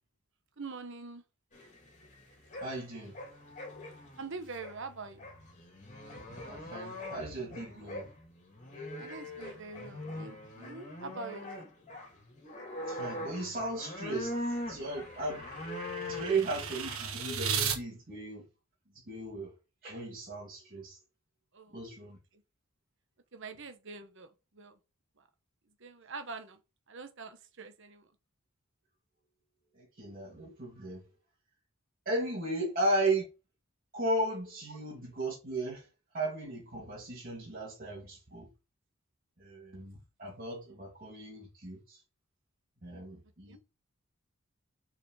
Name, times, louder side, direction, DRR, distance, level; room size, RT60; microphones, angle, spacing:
voice 1, 0.6-1.2 4.2-5.3 9.0-11.5 21.5-21.8 22.3-22.4 23.3-24.8 25.2-25.3 25.8-26.6 26.9-28.1 34.7-34.8 43.5-43.6, right 4 dB, 60° right, 1.1 m, -44 dB
sound 1, 1.5-17.4, left 1 dB, 35° left, 2.8 m, -42 dB
voice 2, 2.6-3.2 6.3-8.1 12.9-15.5 16.0-18.4 18.9-19.5 19.8-21.0 21.7-22.2 29.7-31.1 32.0-33.2 33.9-35.9 36.1-38.5 39.4-42.0 42.8-43.6, right 2 dB, 40° right, 2.6 m, -36 dB
sound 2, 14.2-17.8, right 7 dB, 80° right, 1.5 m, -36 dB
6.8 x 4.9 x 4.9 m
head